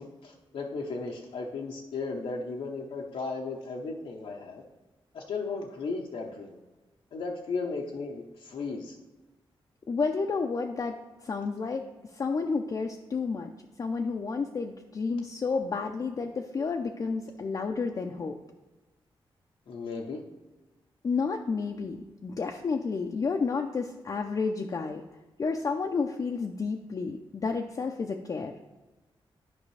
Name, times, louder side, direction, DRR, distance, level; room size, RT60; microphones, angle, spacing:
voice 1, 0.0-4.6 5.1-6.6 7.1-8.9 19.7-20.2, left 4 dB, 85° left, -1 dB, 0.8 m, -35 dB
voice 2, 9.9-11.0 11.2-11.8 12.1-13.5 13.8-18.4 21.0-25.0 25.4-28.5, left 4 dB, 40° left, 3 dB, 0.5 m, -31 dB
10.5 x 5.2 x 3.2 m, 1.2 s
wide cardioid pair, 115°, 10 cm